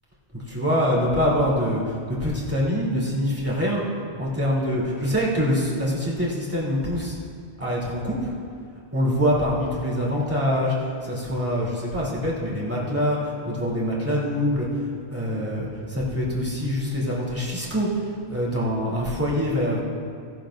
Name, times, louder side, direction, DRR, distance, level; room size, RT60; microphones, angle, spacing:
voice 1, 0.5-1.8 2.1-3.8 4.2-7.1 7.6-8.3 8.9-10.7 11.0-13.2 13.4-14.7 15.1-17.9 18.3-19.8, equal, 10° right, -6 dB, 3.1 m, -24 dB
18.5 x 12.0 x 2.6 m, 2.3 s
omnidirectional pair, 1.1 m